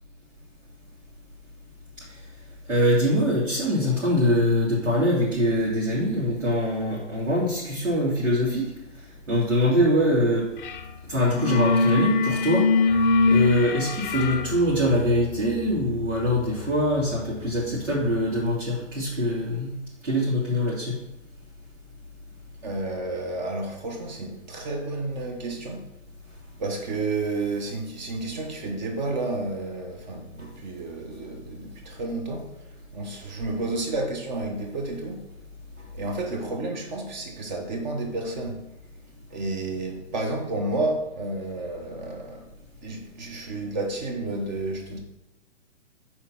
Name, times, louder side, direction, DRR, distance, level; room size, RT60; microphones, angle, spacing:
voice 1, 2.7-8.7 9.3-10.5 11.1-12.7 13.3-19.8 20.0-21.0, equal, 85° right, 2.9 m, -23 dB
sound 1, 10.6-10.9 11.1-17.8, left 3 dB, 40° left, 0.6 m, -25 dB
voice 2, 22.6-25.8 26.6-32.5 32.9-35.2 35.9-38.6 39.3-42.4 42.8-45.0, right 2 dB, 35° right, 1.2 m, -31 dB
6.4 x 4.5 x 6.0 m
figure-of-eight pair, 135°, 37 cm